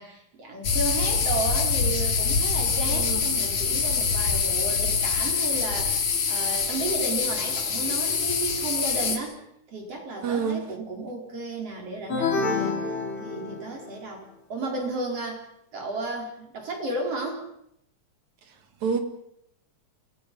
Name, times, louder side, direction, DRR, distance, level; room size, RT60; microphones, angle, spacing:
voice 1, 0.0-9.4 9.7-15.5 15.7-17.5, right 2 dB, 55° right, 5.5 m, -33 dB
sound 1, 0.6-9.2, left 5 dB, 75° left, 3.8 m, -25 dB
voice 2, 2.7-3.2 10.2-10.7 18.5-19.0, right 6 dB, 75° right, 3.3 m, -29 dB
sound 2, 12.1-13.9, left 4 dB, 45° left, 3.5 m, -28 dB
28.5 x 19.0 x 5.5 m
omnidirectional pair, 3.3 m